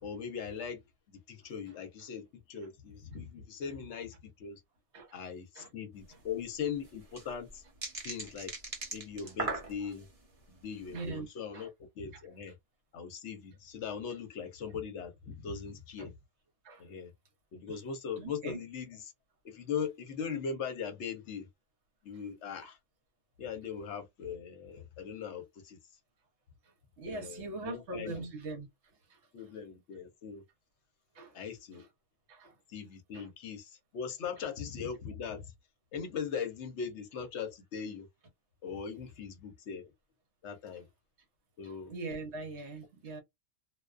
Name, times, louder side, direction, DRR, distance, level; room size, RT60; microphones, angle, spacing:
voice 1, 0.0-4.6 5.1-7.6 8.0-8.5 8.9-10.1 10.5-11.7 12.0-12.5 12.9-16.1 16.8-17.1 17.5-19.1 19.4-21.5 22.0-22.8 23.4-25.8 27.1-28.2 29.3-30.4 31.3-31.8 32.7-35.5 35.9-38.1 38.6-39.9 40.4-40.9 41.6-41.9, left 6 dB, 65° left, 0.9 m, -40 dB
sound 1, 6.0-6.1 6.3-6.4 6.8-10.1 10.6-10.9, right 3 dB, 30° right, 0.8 m, -39 dB
voice 2, 10.9-11.3 11.5-11.7 16.0-16.1 16.6-16.8 17.7-17.8 18.2-18.6 27.0-28.7 29.1-29.2 31.1-31.4 31.7-31.8 32.3-32.5 33.1-33.3 41.9-43.2, right 3 dB, 65° right, 1.0 m, -41 dB
2.3 x 2.2 x 2.3 m
omnidirectional pair, 1.3 m